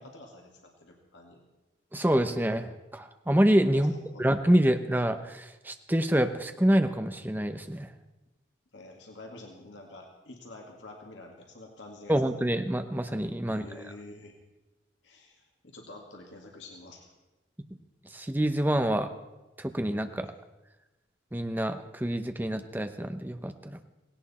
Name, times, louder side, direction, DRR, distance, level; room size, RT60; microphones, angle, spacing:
voice 1, 0.0-1.4 3.7-4.3 8.7-12.2 13.4-14.3 15.0-17.1, left 2 dB, 80° left, 1 dB, 2.1 m, -48 dB
voice 2, 1.9-3.9 4.2-7.9 12.1-13.8 18.1-19.1 19.6-20.3 21.3-23.8, right 1 dB, 10° right, 8 dB, 0.8 m, -26 dB
17.5 x 17.5 x 4.3 m, 1.1 s
head